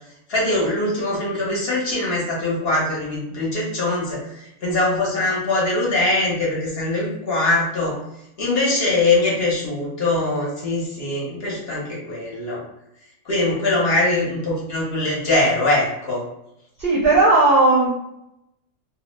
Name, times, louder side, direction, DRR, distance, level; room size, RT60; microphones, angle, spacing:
voice 1, 0.3-4.3 4.6-8.0 8.4-12.6 13.3-16.2, left 2 dB, 50° left, -5 dB, 1.0 m, -22 dB
voice 2, 16.8-17.9, right 2 dB, 60° right, -4 dB, 0.6 m, -15 dB
2.6 x 2.0 x 3.1 m, 0.84 s
omnidirectional pair, 1.4 m